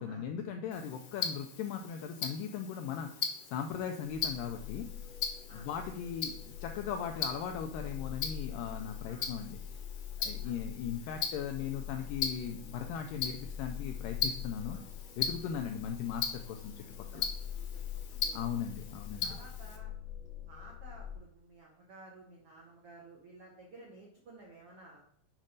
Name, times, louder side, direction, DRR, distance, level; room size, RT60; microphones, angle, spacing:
voice 1, 0.0-4.9 5.5-9.6 10.2-14.8 15.2-16.9 17.1-17.3 18.3-19.4, left 8 dB, 90° left, 5 dB, 1.9 m, -38 dB
Tick-tock, 0.7-19.8, left 7 dB, 70° left, 1.5 m, -40 dB
sound 1, 4.0-21.1, left 9 dB, 45° right, 1.5 m, -44 dB
voice 2, 17.1-18.4 19.2-19.9 20.5-25.0, right 2 dB, 80° right, -1 dB, 1.3 m, -54 dB
7.5 x 5.3 x 3.9 m, 0.67 s
omnidirectional pair, 4.4 m